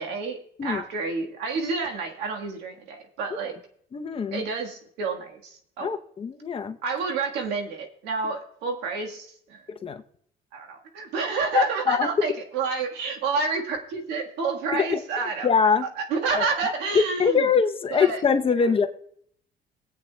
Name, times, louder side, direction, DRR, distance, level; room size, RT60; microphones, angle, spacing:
voice 1, 0.0-3.6 4.3-5.9 6.8-9.6 10.5-15.5 16.0-17.5 17.9-18.2 18.6-18.7, right 4 dB, 90° right, 2 dB, 1.5 m, -29 dB
voice 2, 3.9-4.4 5.8-6.8 9.7-10.0 11.5-12.1 14.7-15.9 16.4-16.5 16.9-18.9, left 6 dB, 35° left, 8 dB, 0.7 m, -23 dB
22.5 x 8.5 x 2.2 m, 0.67 s
cardioid pair, 110°, 17 cm